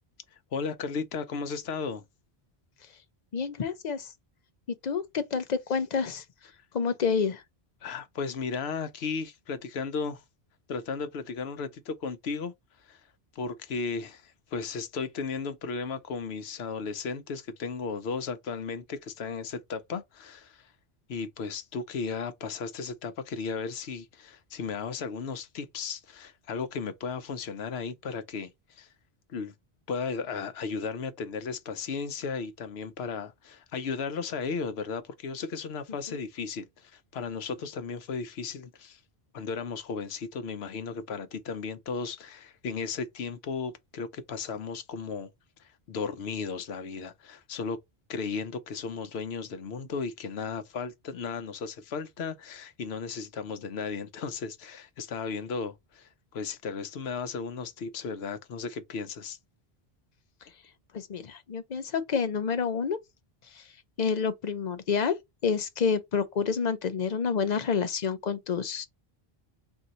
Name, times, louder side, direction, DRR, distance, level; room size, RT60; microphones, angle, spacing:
voice 1, 0.5-2.0 7.8-10.2 10.7-12.5 12.8-13.0 13.4-20.7 21.1-28.9 29.3-29.5 29.9-39.0 39.3-45.3 45.6-47.8 48.1-59.4, left 5 dB, 80° left, 0.9 m, -35 dB
voice 2, 3.3-4.1 4.8-6.2 6.7-7.4 36.1-36.2 60.9-63.0 63.5-63.6 64.0-65.1 65.4-68.9, left 6 dB, 50° left, 0.7 m, -28 dB
3.8 x 2.7 x 4.2 m
omnidirectional pair, 1.1 m